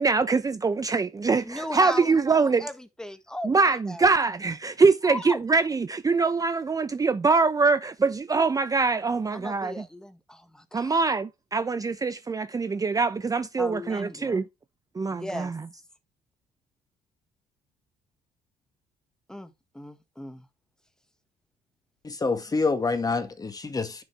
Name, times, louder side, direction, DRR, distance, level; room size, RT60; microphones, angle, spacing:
voice 1, 0.0-2.7 3.4-9.7 10.7-14.5 15.0-15.6, right 4 dB, 20° right, 0.7 m, -23 dB
voice 2, 1.4-4.1 5.0-5.4 9.3-10.9 13.6-14.4 15.1-15.5 19.3-20.5, left 1 dB, 5° left, 1.7 m, -37 dB
voice 3, 22.0-24.0, left 4 dB, 20° left, 1.9 m, -27 dB
10.5 x 7.2 x 3.4 m
cardioid pair, 110°, 17 cm